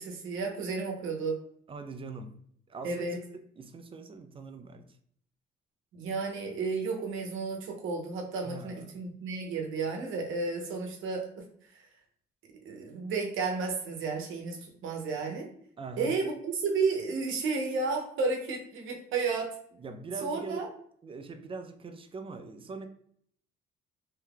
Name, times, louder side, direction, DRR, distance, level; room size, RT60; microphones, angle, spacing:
voice 1, 0.0-1.4 2.8-3.2 5.9-11.2 12.6-15.5 16.0-19.5 20.2-20.7, right 4 dB, 85° right, 0.8 m, -32 dB
voice 2, 1.7-2.4 2.7-4.9 8.4-9.1 15.8-16.2 19.8-20.7 21.0-22.9, right 4 dB, 25° right, 0.4 m, -42 dB
2.8 x 2.3 x 3.4 m
cardioid pair, 90°, 20 cm